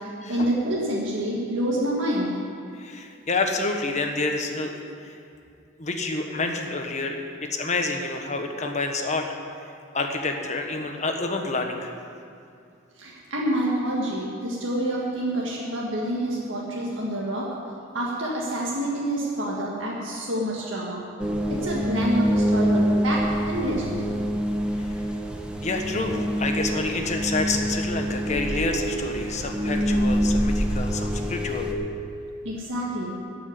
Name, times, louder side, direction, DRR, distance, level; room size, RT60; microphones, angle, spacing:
voice 1, 0.0-2.3 13.0-17.5 17.9-21.0 21.5-24.0 32.4-33.1, right 1 dB, 80° right, -5 dB, 1.8 m, -27 dB
voice 2, 2.8-4.7 5.0-5.1 5.8-9.3 9.9-11.9 24.8-24.9 25.6-31.7, left 3 dB, 35° left, 4 dB, 1.2 m, -28 dB
sound 1, 21.2-31.7, equal, 5° right, 1.1 m, -25 dB
14.5 x 6.2 x 9.6 m, 2.5 s
head